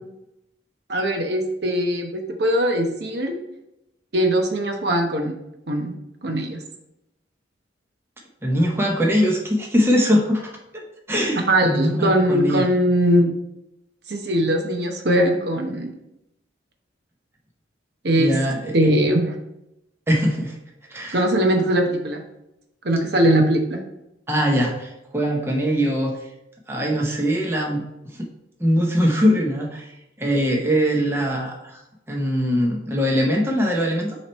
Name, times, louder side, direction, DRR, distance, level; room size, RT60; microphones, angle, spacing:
voice 1, 0.9-3.3 4.1-5.3 5.7-5.9 6.2-6.6 11.5-13.3 14.1-15.9 18.0-18.3 18.7-19.3 21.1-22.2 22.8-23.8, right 1 dB, 60° right, 3 dB, 0.9 m, -20 dB
voice 2, 8.4-10.8 11.1-12.6 18.2-18.7 20.1-20.5 20.9-21.2 24.3-26.1 26.7-27.8 28.6-29.9 30.2-31.8 32.1-34.2, equal, 15° right, -1 dB, 0.7 m, -21 dB
7.1 x 3.2 x 4.3 m, 0.86 s
head